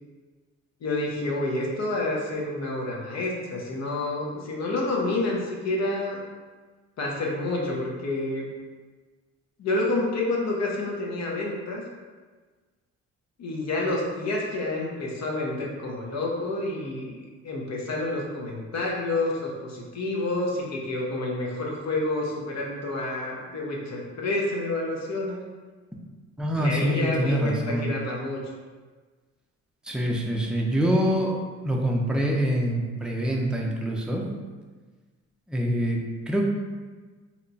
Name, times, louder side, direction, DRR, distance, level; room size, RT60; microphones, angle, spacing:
voice 1, 0.8-6.2 7.0-8.5 9.6-11.8 13.4-25.4 26.6-28.4, left 2 dB, 60° left, -2 dB, 0.7 m, -29 dB
voice 2, 26.4-27.9 29.8-31.4 31.6-34.3 35.5-36.4, equal, 5° right, -1 dB, 0.4 m, -25 dB
2.9 x 2.1 x 3.9 m, 1.4 s
cardioid pair, 90°, 30 cm